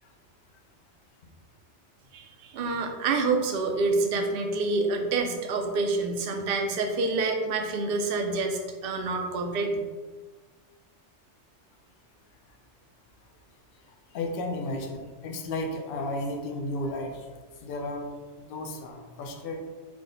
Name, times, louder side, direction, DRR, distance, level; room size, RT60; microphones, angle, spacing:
voice 1, 2.1-9.9, right 3 dB, 60° right, 3 dB, 0.7 m, -27 dB
voice 2, 13.9-17.3 17.6-19.6, left 2 dB, 60° left, 3 dB, 0.7 m, -34 dB
4.7 x 2.1 x 3.9 m, 1.4 s
omnidirectional pair, 1.2 m